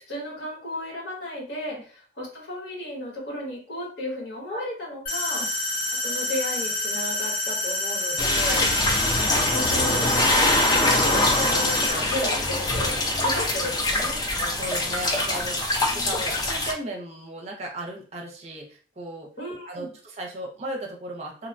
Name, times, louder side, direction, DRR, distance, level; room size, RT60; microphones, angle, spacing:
voice 1, 0.0-5.6 6.0-8.6 9.2-10.1 10.4-13.0 13.2-14.2 15.9-16.3 19.4-19.9, left 1 dB, 60° left, -3 dB, 1.2 m, -34 dB
sound 1, 5.1-11.9, left 2 dB, 45° left, 0.9 m, -28 dB
sound 2, 8.2-16.7, left 1 dB, 20° left, 0.4 m, -23 dB
voice 2, 14.0-19.3 19.7-21.5, right 1 dB, 35° right, 0 dB, 0.6 m, -36 dB
2.8 x 2.1 x 2.5 m, 0.40 s
head